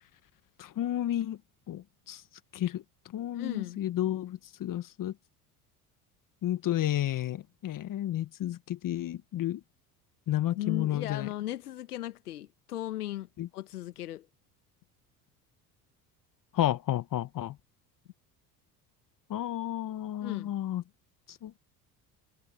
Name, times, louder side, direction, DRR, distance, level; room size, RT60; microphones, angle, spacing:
voice 1, 0.6-1.4 1.7-2.2 2.5-2.8 3.1-5.1 6.4-9.6 10.3-11.3 13.4-13.5 16.5-17.5 19.3-20.8 21.4-21.5, left 12 dB, 45° left, 1.5 m, -31 dB
voice 2, 3.3-3.8 10.5-14.3 20.2-20.5, left 14 dB, 85° left, 1.6 m, -37 dB
hypercardioid pair, 70°, 44 cm